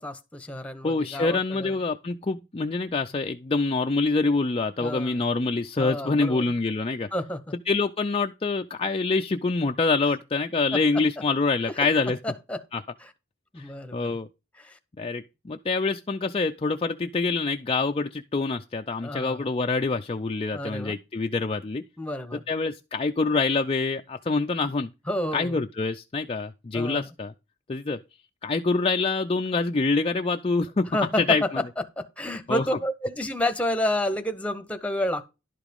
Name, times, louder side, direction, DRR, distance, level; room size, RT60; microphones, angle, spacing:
voice 1, 0.0-1.7 4.8-5.2 5.8-6.4 7.1-7.5 10.7-10.8 11.7-11.8 12.2-12.6 13.0-13.1 13.5-14.2 14.6-14.8 19.0-19.5 20.5-21.0 22.0-22.4 25.1-25.5 26.7-27.1 30.9-31.6 32.0-35.3, left 1 dB, 5° left, 1.0 m, -30 dB
voice 2, 0.8-7.1 7.7-12.2 12.7-12.8 13.6-14.3 15.0-21.8 22.3-24.9 25.3-27.3 27.7-28.0 28.4-30.9 31.3-31.4 32.5-32.6, left 3 dB, 25° left, 0.5 m, -26 dB
11.5 x 5.0 x 5.3 m
head